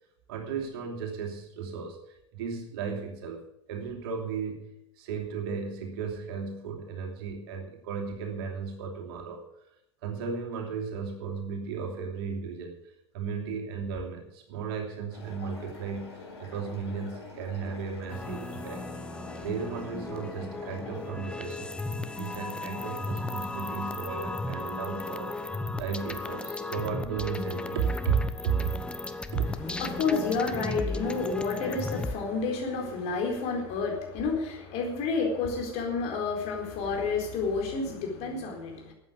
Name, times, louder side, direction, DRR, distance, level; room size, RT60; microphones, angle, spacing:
voice 1, 0.3-2.0 2.3-4.7 5.0-9.4 10.0-12.8 13.1-18.8 19.4-21.7 22.1-25.3 25.8-28.8 29.3-29.4, right 6 dB, 60° right, 1 dB, 3.0 m, -34 dB
sound 1, 15.1-21.1, left 3 dB, 70° left, 4.5 m, -46 dB
sound 2, 18.1-32.2, left 3 dB, 5° left, 1.0 m, -35 dB
voice 2, 29.5-38.9, left 4 dB, 45° left, 1 dB, 4.3 m, -30 dB
13.0 x 8.7 x 8.5 m, 0.83 s
figure-of-eight pair, 80°, 14 cm